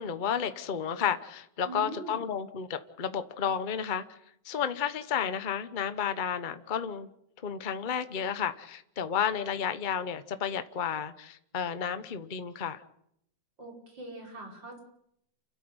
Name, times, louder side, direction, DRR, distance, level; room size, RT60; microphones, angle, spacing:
voice 1, 0.0-4.0 4.4-7.1 7.4-12.8, left 8 dB, 35° left, 10 dB, 1.0 m, -32 dB
voice 2, 1.6-2.2 13.6-14.8, right 2 dB, 80° right, 0 dB, 6.2 m, -42 dB
29.5 x 13.0 x 8.0 m, 0.74 s
omnidirectional pair, 2.0 m